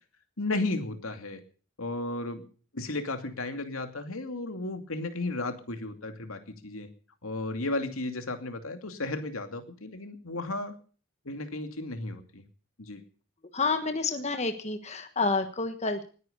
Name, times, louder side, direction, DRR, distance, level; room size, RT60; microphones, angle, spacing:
voice 1, 0.4-1.4 1.8-2.4 2.7-6.9 7.2-10.7 11.2-12.4 12.8-13.0, left 2 dB, 80° left, 7 dB, 2.6 m, -34 dB
voice 2, 13.5-16.0, left 3 dB, 30° left, 7 dB, 1.3 m, -29 dB
20.0 x 9.6 x 6.8 m, 0.41 s
head